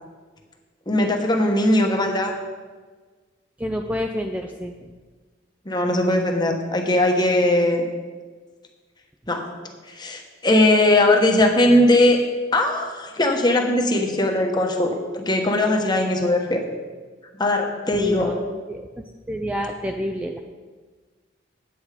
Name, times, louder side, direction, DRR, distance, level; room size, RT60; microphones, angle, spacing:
voice 1, 0.9-2.4 5.6-7.8 9.3-9.4 9.9-12.2 12.5-16.6 17.4-18.4, left 1 dB, 25° left, 3 dB, 1.1 m, -19 dB
voice 2, 3.6-4.7 17.9-18.4 18.7-18.9 19.3-20.4, equal, 10° right, 3 dB, 0.4 m, -28 dB
8.8 x 8.6 x 4.9 m, 1.4 s
head